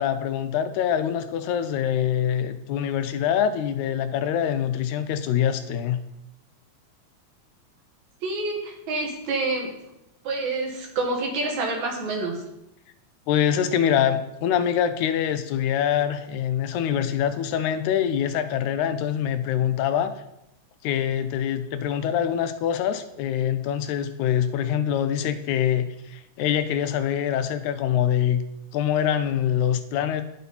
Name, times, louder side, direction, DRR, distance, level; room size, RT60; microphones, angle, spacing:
voice 1, 0.0-6.0 13.3-20.1 20.8-28.4 28.7-30.2, left 9 dB, 85° left, 10 dB, 1.9 m, -24 dB
voice 2, 8.2-9.7 10.2-12.4, right 3 dB, 75° right, 0 dB, 2.8 m, -27 dB
11.5 x 4.1 x 4.1 m, 0.85 s
omnidirectional pair, 3.4 m